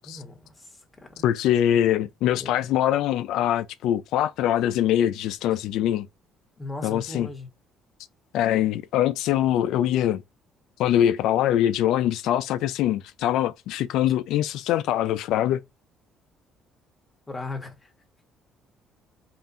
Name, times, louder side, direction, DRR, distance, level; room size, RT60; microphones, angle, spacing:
voice 1, 0.0-1.2 2.3-2.7 6.6-7.5 17.3-17.9, left 2 dB, 10° left, 1.5 m, -38 dB
voice 2, 1.2-6.1 6.8-7.3 8.3-10.2 10.8-15.6, left 11 dB, 80° left, 0.3 m, -23 dB
5.5 x 2.5 x 2.6 m
cardioid pair, 125°, 0 cm